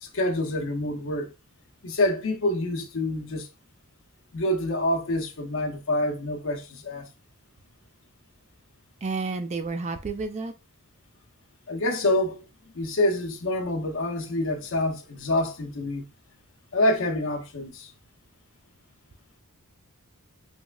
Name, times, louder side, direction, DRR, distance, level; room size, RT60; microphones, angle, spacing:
voice 1, 0.0-1.3 1.8-3.5 4.3-7.1 11.7-12.4 12.7-16.0 16.7-17.9, left 1 dB, 60° left, 0.6 m, -27 dB
voice 2, 9.0-10.5, right 4 dB, 30° right, 0.3 m, -30 dB
3.2 x 2.9 x 2.3 m
head